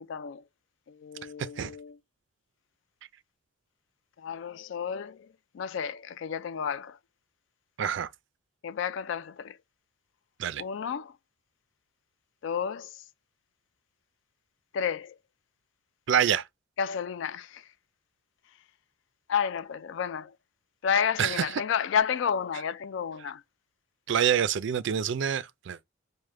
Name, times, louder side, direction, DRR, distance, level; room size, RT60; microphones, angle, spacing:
voice 1, 0.1-0.4 0.9-2.0 4.2-5.3 5.5-7.0 8.6-9.6 10.6-11.1 12.4-12.9 14.7-15.2 16.8-17.6 19.3-20.3 20.8-23.4, left 7 dB, 60° left, 0.3 m, -31 dB
voice 2, 7.8-8.1 10.4-10.6 16.1-16.4 21.2-21.4 24.1-25.8, right 8 dB, 60° right, 0.4 m, -26 dB
4.9 x 2.1 x 3.2 m
head